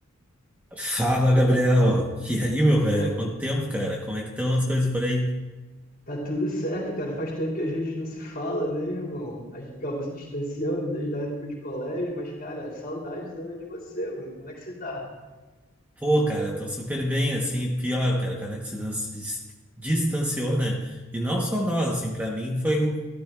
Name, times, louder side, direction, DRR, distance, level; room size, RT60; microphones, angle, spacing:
voice 1, 0.7-5.4 16.0-19.4 19.8-23.1, equal, 5° right, -1 dB, 0.8 m, -24 dB
voice 2, 6.1-15.1, equal, 45° left, -4 dB, 3.8 m, -31 dB
15.0 x 13.0 x 2.3 m, 1.2 s
head